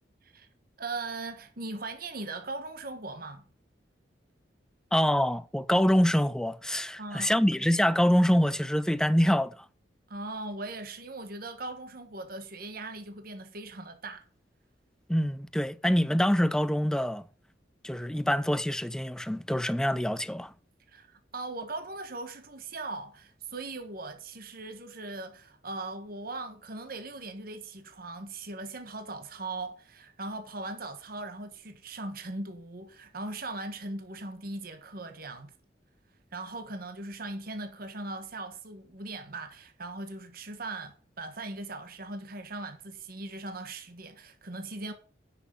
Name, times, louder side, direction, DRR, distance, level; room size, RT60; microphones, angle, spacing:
voice 1, 0.8-3.5 7.0-7.3 10.1-14.2 20.9-35.5 36.3-44.9, right 2 dB, 55° right, 1.4 m, -39 dB
voice 2, 4.9-9.7 15.1-17.2 17.8-20.5, equal, 5° left, 0.5 m, -25 dB
9.8 x 6.2 x 5.4 m
head